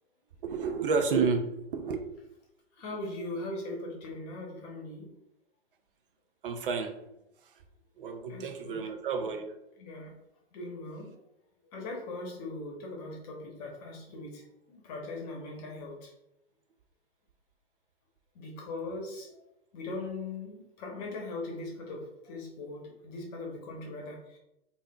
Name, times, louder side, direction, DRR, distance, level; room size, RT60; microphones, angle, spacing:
voice 1, 0.4-2.0 6.4-6.9 8.0-9.5, right 5 dB, 55° right, 6 dB, 0.5 m, -30 dB
voice 2, 2.8-5.1 8.3-8.8 9.2-9.3 9.8-10.1 10.5-11.1 11.7-14.4 14.7-16.1 18.3-19.4 19.7-24.4, left 2 dB, 40° left, 0 dB, 1.0 m, -40 dB
3.3 x 2.5 x 2.3 m, 0.87 s
figure-of-eight pair, 120°, 32 cm